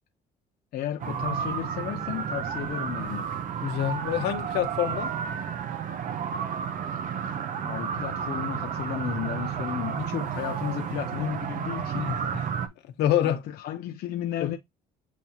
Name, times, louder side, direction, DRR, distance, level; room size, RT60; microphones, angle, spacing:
voice 1, 0.7-3.3 7.6-12.1 13.2-14.6, left 11 dB, 65° left, 0.5 m, -33 dB
sound 1, 1.0-12.7, right 7 dB, 50° right, 0.7 m, -32 dB
voice 2, 3.6-5.1 12.0-12.4 13.0-13.4 14.4-14.6, left 11 dB, 85° left, 0.9 m, -26 dB
8.2 x 2.8 x 2.2 m
cardioid pair, 110°, 17 cm